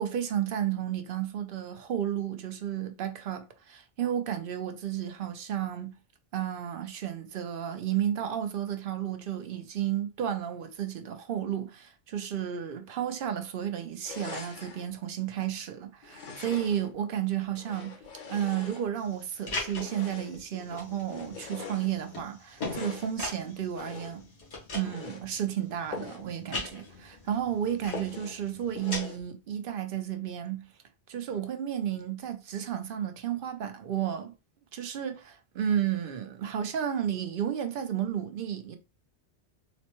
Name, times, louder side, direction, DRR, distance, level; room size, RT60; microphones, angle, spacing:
voice 1, 0.0-5.9 6.3-18.0 18.3-24.2 24.7-30.7 31.1-34.3 34.7-38.8, right 10 dB, 65° right, 0.7 m, -32 dB
sound 1, 14.0-14.9 16.0-16.9 17.5-19.2 19.7-20.5 21.0-21.9 22.5-23.2 23.7-24.3 24.7-25.2 25.9-26.3 26.6-26.7 27.1-27.2 27.9-28.4 28.7-29.2, left 5 dB, 50° left, 0.8 m, -42 dB
sound 2, 19.0-29.0, left 3 dB, 80° left, 1.5 m, -41 dB
4.0 x 2.1 x 2.9 m
omnidirectional pair, 1.1 m